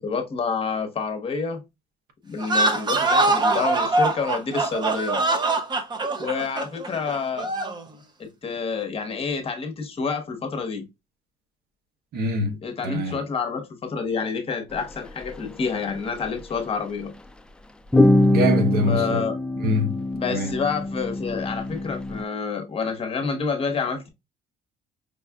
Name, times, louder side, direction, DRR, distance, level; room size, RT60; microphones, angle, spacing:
voice 1, 0.0-1.6 2.2-5.2 6.2-7.5 8.2-10.8 12.6-17.1 18.9-19.4 20.1-24.1, left 5 dB, 35° left, 1.0 m, -28 dB
sound 1, 2.4-7.8, right 2 dB, 25° right, 0.7 m, -23 dB
voice 2, 12.1-12.6 12.8-13.2 18.3-19.2 19.6-20.0 20.3-20.5, equal, 65° right, 1.0 m, -24 dB
sound 2, 14.8-14.9 15.2-15.4 16.2-16.6 17.9-22.2, left 2 dB, 5° left, 0.3 m, -23 dB
5.1 x 2.4 x 2.2 m
cardioid pair, 110°, 17 cm